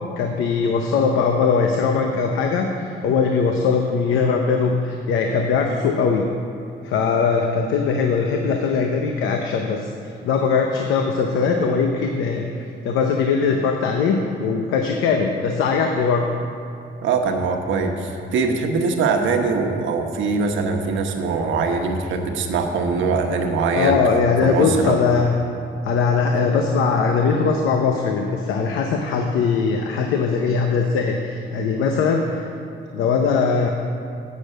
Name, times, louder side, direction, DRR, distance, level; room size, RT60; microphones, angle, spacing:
voice 1, 0.2-6.3 6.8-9.9 10.2-16.2 23.8-25.3 25.8-32.5 32.9-33.7, left 5 dB, 90° left, 3 dB, 0.7 m, -20 dB
voice 2, 17.0-24.0 24.4-25.0, right 4 dB, 75° right, 3 dB, 1.0 m, -22 dB
8.4 x 6.6 x 7.5 m, 2.6 s
cardioid pair, 90°, 20 cm